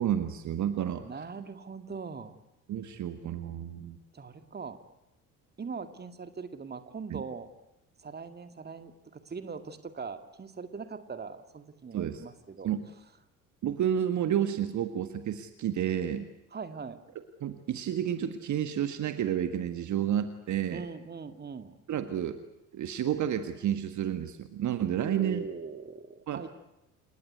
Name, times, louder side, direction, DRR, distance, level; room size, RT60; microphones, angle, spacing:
voice 1, 0.0-1.0 2.7-4.0 7.1-7.2 11.9-12.2 12.6-12.8 13.6-16.3 17.4-20.8 21.9-22.4 22.7-25.4 26.3-26.5, right 10 dB, 40° right, 10 dB, 1.7 m, -30 dB
voice 2, 1.0-2.4 4.1-4.8 5.6-7.5 8.0-12.7 16.5-17.0 20.7-21.8 25.0-26.5, right 5 dB, 20° right, 10 dB, 2.2 m, -41 dB
29.0 x 19.0 x 9.6 m, 0.94 s
figure-of-eight pair, 55°, 44 cm